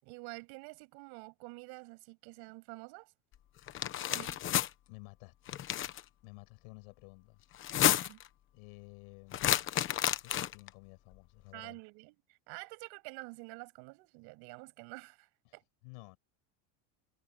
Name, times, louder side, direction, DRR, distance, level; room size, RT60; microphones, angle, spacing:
voice 1, 0.0-3.1 4.1-4.4 7.9-8.2 11.5-12.1 12.5-15.6, right 30 dB, 65° right, 7.6 m, -48 dB
sound 1, 3.7-4.7 5.5-6.0 7.5-8.3 9.3-10.7, left 11 dB, 30° left, 1.0 m, -30 dB
voice 2, 4.9-5.6 6.2-7.4 8.5-11.8 15.5-16.2, left 32 dB, 70° left, 5.9 m, -54 dB
cardioid pair, 170°, 42 cm